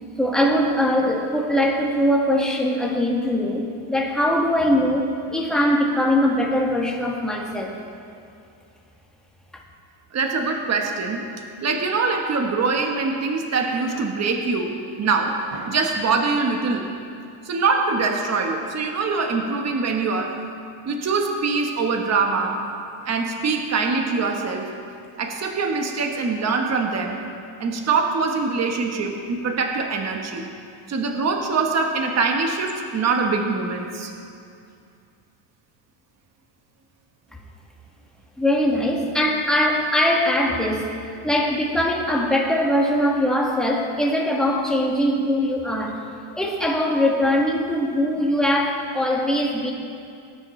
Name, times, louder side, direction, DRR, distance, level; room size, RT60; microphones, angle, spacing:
voice 1, 0.2-7.8 9.5-9.6 37.3-37.4 38.4-46.0 46.3-49.7, left 1 dB, ahead, -2 dB, 1.6 m, -21 dB
voice 2, 10.1-11.2 11.6-16.8 17.4-20.3 20.9-22.6 23.1-24.7 25.2-27.2 27.6-30.4 30.9-34.1, right 4 dB, 35° right, 3 dB, 1.2 m, -23 dB
19.5 x 9.7 x 3.2 m, 2.5 s
cardioid pair, 120°, 48 cm